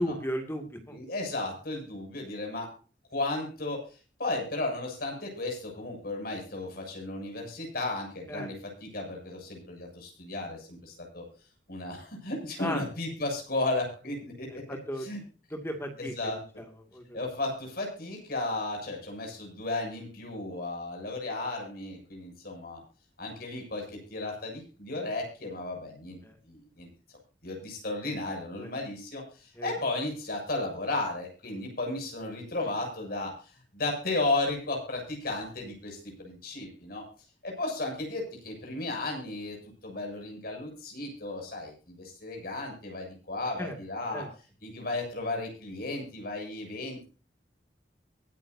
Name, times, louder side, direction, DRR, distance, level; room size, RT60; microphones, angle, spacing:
voice 1, 0.0-1.0 8.3-8.5 12.6-12.8 14.7-15.1 15.5-16.1 16.9-17.2 26.2-26.3 28.6-28.7 29.6-29.7 43.6-43.7 44.1-44.3, equal, 15° left, 4 dB, 2.3 m, -34 dB
voice 2, 0.9-2.7 3.1-3.8 4.2-11.3 11.7-14.6 15.0-15.2 16.0-16.4 17.1-22.8 23.2-26.2 26.4-26.9 27.4-37.1 37.4-39.6 39.8-44.3 44.6-47.0, left 2 dB, 55° left, 1 dB, 7.0 m, -34 dB
23.5 x 9.6 x 2.7 m, 0.36 s
head